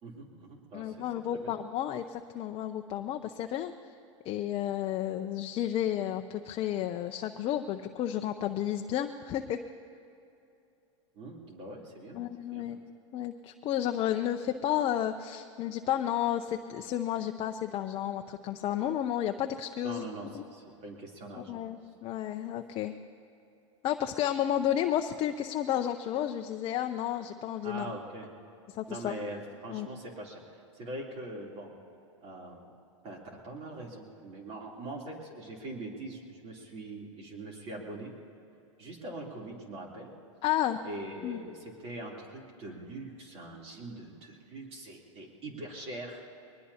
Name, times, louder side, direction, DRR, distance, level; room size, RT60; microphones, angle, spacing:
voice 1, 0.0-1.5 11.1-12.2 12.5-12.6 19.8-21.6 27.6-28.3 28.9-31.7 32.2-32.7 33.0-33.2 33.4-38.1 38.8-40.1 40.8-46.2, right 1 dB, 40° right, -1 dB, 3.3 m, -42 dB
voice 2, 0.7-3.7 4.2-9.6 12.1-12.8 13.1-20.0 20.3-20.4 21.4-22.9 23.8-27.9 28.7-29.1 29.7-29.9 40.4-40.8 41.2-41.4, left 11 dB, 35° left, 6 dB, 0.6 m, -32 dB
23.0 x 20.0 x 2.9 m, 2.7 s
hypercardioid pair, 105°, 16 cm